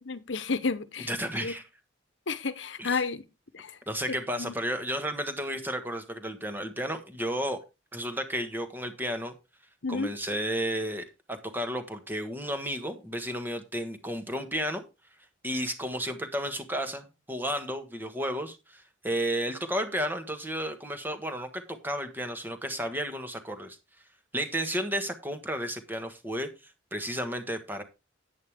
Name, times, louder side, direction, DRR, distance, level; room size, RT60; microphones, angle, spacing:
voice 1, 0.0-1.1 1.4-1.5 2.3-3.2 3.5-3.8 4.1-4.5 9.8-10.1, left 4 dB, 70° left, 1.0 m, -31 dB
voice 2, 1.1-1.6 2.8-3.0 3.9-7.6 7.9-9.3 9.9-14.8 15.4-23.8 24.3-27.8, equal, 10° right, 1.4 m, -32 dB
10.5 x 8.9 x 3.5 m
head